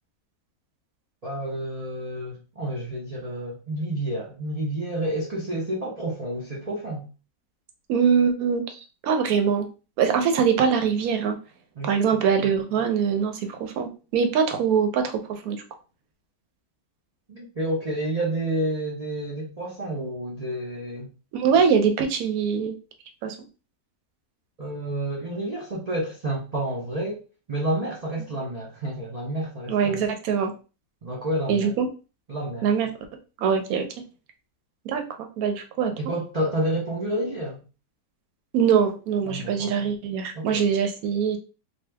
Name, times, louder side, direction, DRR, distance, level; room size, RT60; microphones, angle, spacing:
voice 1, 1.2-7.1 11.8-12.2 17.3-21.1 24.6-27.2 27.5-30.0 31.0-31.7 32.3-32.7 36.0-37.6 39.2-39.8 40.3-40.7, right 1 dB, 85° right, 0.3 m, -29 dB
voice 2, 7.9-9.7 10.0-11.4 11.8-15.6 21.3-22.7 23.2-23.4 29.7-30.5 31.5-31.9 32.6-32.9 33.4-33.9 34.8-35.0 35.4-35.9 38.5-41.4, right 6 dB, 70° right, 1.0 m, -23 dB
2.7 x 2.3 x 3.3 m
omnidirectional pair, 1.7 m